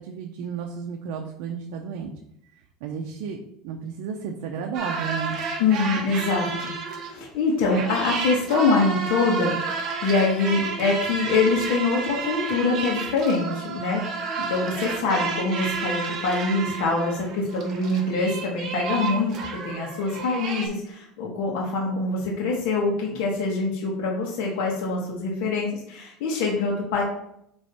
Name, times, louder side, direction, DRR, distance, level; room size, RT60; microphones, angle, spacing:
voice 1, 0.0-2.1 2.8-3.4 3.6-5.4, right 6 dB, 65° right, 1 dB, 0.7 m, -32 dB
sound 1, 4.7-7.3 7.7-20.7, right 4 dB, 40° right, 1.2 m, -31 dB
voice 2, 5.6-9.5 10.0-19.4 19.6-27.0, left 3 dB, 75° left, -2 dB, 1.5 m, -24 dB
8.0 x 3.2 x 4.2 m, 0.75 s
cardioid pair, 165°, 0 cm